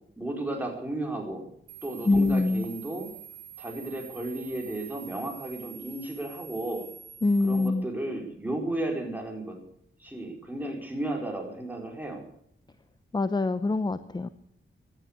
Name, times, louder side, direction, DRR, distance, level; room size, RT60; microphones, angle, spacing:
voice 1, 0.2-1.5 1.8-3.1 3.6-6.9 7.4-9.6 10.0-12.2, right 1 dB, 10° right, 1 dB, 4.5 m, -34 dB
sound 1, 1.7-7.7, right 9 dB, 60° right, 2.5 m, -46 dB
voice 2, 2.0-2.7 7.2-7.9 13.1-14.3, left 2 dB, 20° left, 12 dB, 0.7 m, -24 dB
16.0 x 11.5 x 6.8 m, 0.72 s
wide cardioid pair, 135°, 21 cm